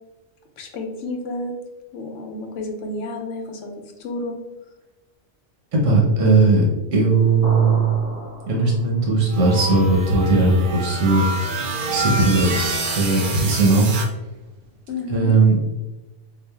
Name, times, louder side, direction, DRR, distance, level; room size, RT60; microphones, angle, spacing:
voice 1, 0.6-1.5 1.9-4.4 14.9-15.4, left 2 dB, 80° left, 3 dB, 0.9 m, -31 dB
voice 2, 5.7-6.7 6.9-7.9 8.4-12.5 12.9-13.9 15.1-15.6, right 3 dB, 85° right, -2 dB, 1.2 m, -18 dB
sound 1, 7.4-9.1, equal, 35° left, 0.9 m, -33 dB
sound 2, 9.3-14.1, right 2 dB, 55° right, 0.6 m, -27 dB
4.8 x 2.4 x 2.3 m, 1.1 s
omnidirectional pair, 1.2 m